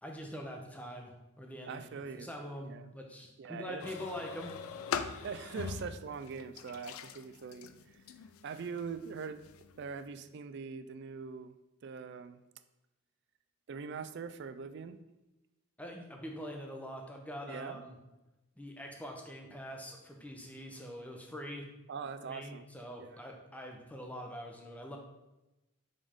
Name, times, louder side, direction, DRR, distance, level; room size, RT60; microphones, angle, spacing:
voice 1, 0.0-1.9 2.1-4.5 15.8-18.0 18.6-21.7 22.2-25.0, equal, 5° left, 2 dB, 0.7 m, -44 dB
voice 2, 1.7-2.3 2.6-2.9 3.4-3.9 5.2-8.0 8.4-9.4 9.8-11.5 11.8-12.4 13.7-15.0 17.5-17.8 21.9-22.7 23.0-23.2, right 5 dB, 55° right, 11 dB, 0.3 m, -42 dB
sound 1, 3.8-10.0, left 6 dB, 85° left, 0.4 m, -43 dB
5.4 x 5.2 x 3.5 m, 0.99 s
head